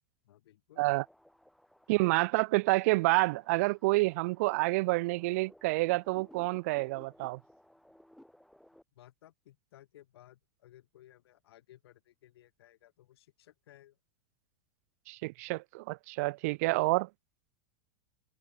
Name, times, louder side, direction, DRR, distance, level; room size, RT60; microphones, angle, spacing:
voice 1, 0.2-0.9 8.9-14.0, left 13 dB, 75° left, 6.3 m, -59 dB
sound 1, 0.9-8.8, equal, ahead, 1.2 m, -60 dB
voice 2, 1.9-7.4 15.1-17.1, right 23 dB, 35° right, 0.4 m, -28 dB
supercardioid pair, 180°, 13 cm